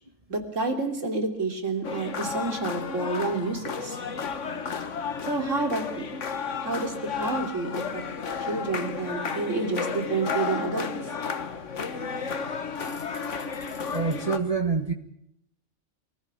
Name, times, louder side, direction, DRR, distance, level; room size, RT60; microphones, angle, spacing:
voice 1, 0.3-4.0 5.2-6.1 6.6-8.0 8.4-10.9, right 3 dB, 85° right, 5 dB, 3.4 m, -29 dB
sound 1, 1.8-14.4, left 5 dB, 75° left, 1.7 m, -32 dB
voice 2, 12.8-13.3 13.7-14.9, right 4 dB, 30° right, 4 dB, 1.6 m, -28 dB
24.0 x 14.5 x 9.5 m, 0.76 s
omnidirectional pair, 1.3 m